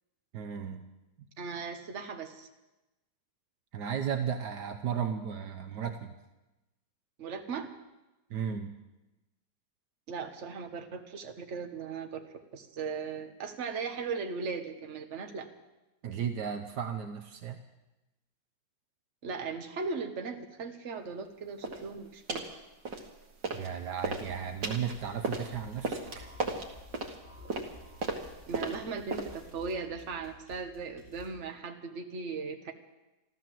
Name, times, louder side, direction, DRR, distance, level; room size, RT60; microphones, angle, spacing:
voice 1, 0.3-0.9 3.7-6.1 8.3-8.7 16.0-17.6 23.5-26.3, right 7 dB, 70° right, 7 dB, 1.4 m, -35 dB
voice 2, 1.4-2.5 7.2-7.7 10.1-12.2 12.5-15.5 19.2-22.4 28.5-32.7, right 5 dB, 45° right, 5 dB, 1.5 m, -38 dB
sound 1, 21.6-21.9 22.3-22.5 22.9-23.7 24.0-29.5, right 3 dB, 90° right, 2.3 m, -36 dB
sound 2, 24.2-31.3, left 3 dB, 65° left, 4.6 m, -54 dB
14.0 x 13.0 x 7.6 m, 1.0 s
omnidirectional pair, 1.9 m